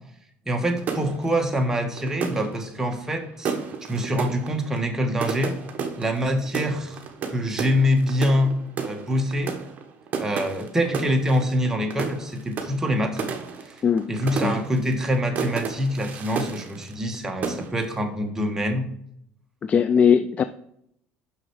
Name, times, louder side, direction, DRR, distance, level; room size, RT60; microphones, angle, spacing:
voice 1, 0.4-3.5 3.9-5.5 6.0-7.0 7.3-8.5 8.8-9.5 10.2-13.2 13.6-13.8 14.1-18.9, equal, 10° right, 3 dB, 1.4 m, -25 dB
sound 1, 0.8-17.2 17.4-18.0, right 6 dB, 40° right, 1.2 m, -33 dB
voice 2, 19.6-20.4, left 7 dB, 35° left, 12 dB, 0.4 m, -19 dB
6.1 x 5.9 x 4.8 m, 0.73 s
supercardioid pair, 105°, 4 cm